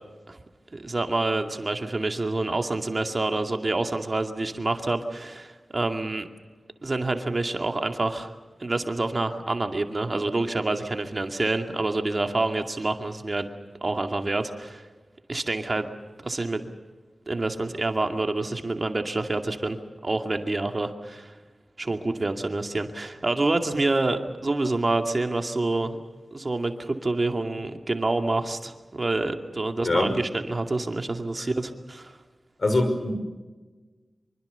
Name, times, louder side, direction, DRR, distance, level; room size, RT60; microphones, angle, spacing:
voice 1, 0.7-6.3 6.8-8.3 8.6-13.5 13.8-14.9 15.3-15.9 16.2-16.7 17.3-19.8 20.0-21.3 21.8-26.0 26.3-32.1, right 2 dB, 45° right, 5 dB, 2.3 m, -27 dB
voice 2, 32.6-33.1, left 2 dB, 60° left, 7 dB, 5.6 m, -23 dB
25.5 x 24.5 x 6.9 m, 1.3 s
wide cardioid pair, 60°, 0 cm